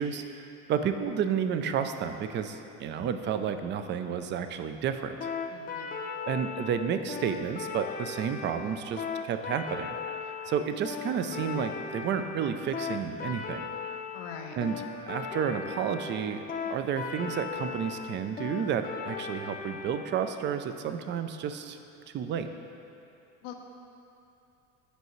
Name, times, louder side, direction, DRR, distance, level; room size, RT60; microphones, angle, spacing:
voice 1, 0.0-5.3 6.3-9.9 10.2-13.7 14.6-16.4 16.7-21.8 22.1-22.5, right 7 dB, 35° right, 8 dB, 0.4 m, -31 dB
sound 1, 5.2-20.0, left 6 dB, 25° left, 0.6 m, -37 dB
voice 2, 5.5-6.0 14.1-14.6 23.4-23.5, left 7 dB, 85° left, 3 dB, 0.8 m, -42 dB
8.1 x 5.5 x 3.1 m, 2.7 s
supercardioid pair, 100°, 36 cm